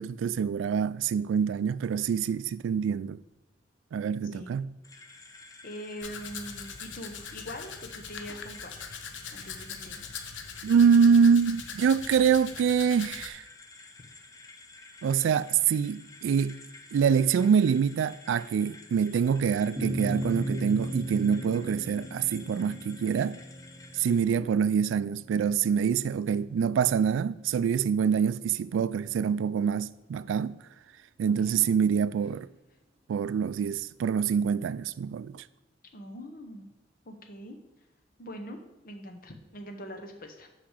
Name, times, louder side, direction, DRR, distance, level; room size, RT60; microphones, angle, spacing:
voice 1, 0.0-3.2 3.9-4.7 10.6-13.4 15.0-16.6 16.9-23.4 23.9-30.6 31.2-32.5 33.1-35.4, right 7 dB, 85° right, 0.3 m, -25 dB
sound 1, 4.8-24.2, left 3 dB, 20° left, 0.7 m, -51 dB
voice 2, 5.6-8.7 9.3-10.1 24.1-24.5 31.3-31.6 35.9-36.7 37.1-37.6 38.2-38.6 38.8-40.5, equal, 50° left, 1.0 m, -42 dB
Domestic sounds home sounds, 6.0-13.3, left 6 dB, 80° left, 0.8 m, -42 dB
sound 2, 19.8-26.3, right 1 dB, 15° right, 1.0 m, -37 dB
5.9 x 5.0 x 6.5 m
head